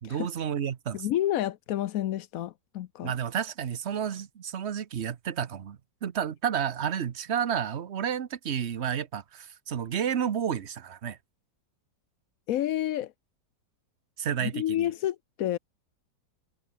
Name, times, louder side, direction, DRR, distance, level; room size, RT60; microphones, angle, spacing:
voice 1, 0.0-1.0 3.0-11.2 14.2-14.9, right 8 dB, 45° right, 1.0 m, -31 dB
voice 2, 0.9-3.1 12.5-13.1 14.4-15.6, left 12 dB, 65° left, 0.9 m, -29 dB
omnidirectional pair, 2.0 m